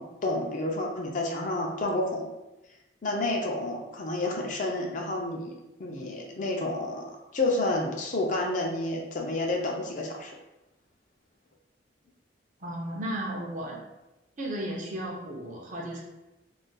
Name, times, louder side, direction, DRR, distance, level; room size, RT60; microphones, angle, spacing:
voice 1, 0.0-2.3 3.0-5.5 5.8-7.0 7.3-10.3, left 2 dB, 40° left, 0 dB, 0.4 m, -30 dB
voice 2, 12.6-13.8 14.4-16.0, right 1 dB, 40° right, -1 dB, 0.5 m, -34 dB
3.9 x 2.4 x 2.2 m, 1.0 s
head